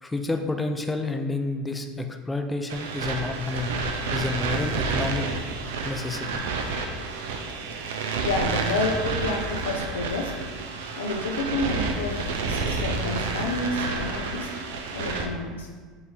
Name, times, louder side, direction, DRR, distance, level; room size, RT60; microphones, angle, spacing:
voice 1, 0.0-3.8 4.1-5.3 5.8-6.4, left 3 dB, 15° left, 5 dB, 0.4 m, -29 dB
sound 1, 2.7-15.3, right 4 dB, 75° right, 0.4 m, -30 dB
voice 2, 8.2-10.4 11.0-14.5 14.9-15.7, left 3 dB, 85° left, 1 dB, 0.4 m, -29 dB
3.7 x 2.6 x 4.5 m, 1.5 s
hypercardioid pair, 80°, 0 cm